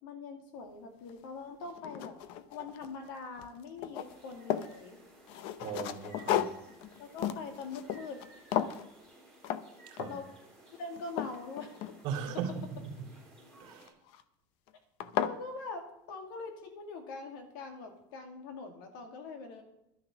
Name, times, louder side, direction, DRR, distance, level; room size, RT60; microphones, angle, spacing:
voice 1, 0.0-2.2 2.5-5.0 7.0-8.2 10.0-10.3 10.8-11.7 15.2-19.6, left 4 dB, 85° left, 4 dB, 2.6 m, -43 dB
sound 1, 1.1-1.2 1.7-3.1 3.4-4.8 5.3-8.3 8.5-8.9 9.4-9.6 10.0-10.3 10.7-12.3 13.8-14.2 14.7-14.8 15.0-15.4, left 10 dB, 55° left, 0.7 m, -35 dB
sound 2, 3.9-13.9, right 1 dB, 10° left, 3.7 m, -57 dB
voice 2, 5.6-6.5 9.9-10.1 12.0-13.1 13.6-13.9 15.0-15.1, right 7 dB, 50° right, 1 dB, 2.5 m, -38 dB
12.0 x 9.1 x 6.2 m, 0.84 s
cardioid pair, 170°, 11 cm